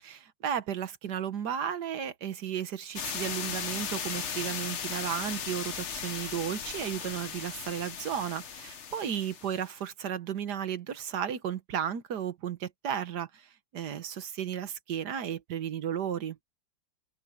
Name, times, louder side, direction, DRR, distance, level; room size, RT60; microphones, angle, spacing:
voice 1, 0.0-13.5 13.7-16.4, right 9 dB, 65° right, 1.6 m, -34 dB
sound 1, 2.9-9.7, left 7 dB, 45° left, 1.2 m, -37 dB
open air
omnidirectional pair, 2.0 m